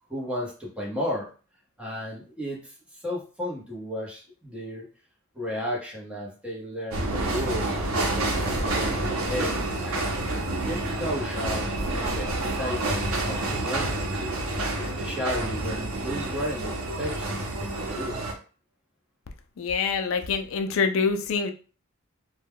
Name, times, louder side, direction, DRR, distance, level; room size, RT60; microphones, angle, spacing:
voice 1, 0.1-1.3 1.8-4.9 5.3-10.1 10.6-18.2, equal, 5° right, -4 dB, 0.8 m, -34 dB
sound 1, 6.9-18.3, right 2 dB, 85° right, 0.7 m, -28 dB
voice 2, 19.6-21.5, left 5 dB, 70° left, 6 dB, 0.4 m, -25 dB
2.2 x 2.2 x 3.4 m, 0.37 s
head